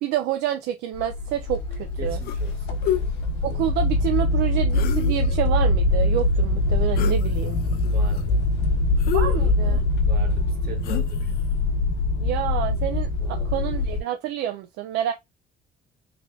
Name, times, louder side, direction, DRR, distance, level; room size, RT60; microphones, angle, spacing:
voice 1, 0.0-2.2 3.4-7.6 9.1-9.8 12.2-15.1, right 11 dB, 85° right, 0.5 m, -28 dB
sound 1, 0.9-14.0, left 2 dB, 85° left, 0.9 m, -23 dB
voice 2, 2.0-3.2 7.9-8.5 10.0-11.4 13.2-13.7, right 6 dB, 65° right, 1.6 m, -42 dB
sound 2, 2.2-2.5 2.8-3.0 4.7-5.4 6.9-7.2 7.7-8.2 9.0-9.8 10.8-11.3, left 12 dB, 65° left, 0.4 m, -29 dB
3.5 x 2.3 x 3.3 m
cardioid pair, 110°, 17 cm